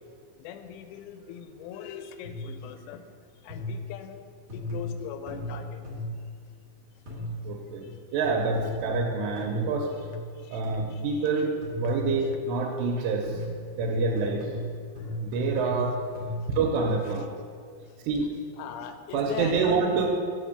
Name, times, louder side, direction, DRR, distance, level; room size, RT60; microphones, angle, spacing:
voice 1, 0.4-3.1 3.4-4.3 4.5-5.8 7.8-8.0 10.4-10.6 10.9-11.1 15.0-15.2 15.6-15.7 18.6-20.1, left 8 dB, 90° left, 8 dB, 2.8 m, -40 dB
sound 1, 2.2-2.6 3.5-3.9 4.5-6.3 7.1-7.5 8.2-10.3 10.6-11.1 11.6-12.4 13.2-17.2, left 1 dB, 50° right, 1.5 m, -35 dB
voice 2, 7.4-9.9 10.5-13.4 13.8-14.5 15.2-16.0 16.6-17.3 18.0-18.3 19.1-20.1, right 4 dB, 85° right, 1 dB, 2.7 m, -27 dB
7.9 x 4.3 x 6.6 m, 2.2 s
omnidirectional pair, 5.0 m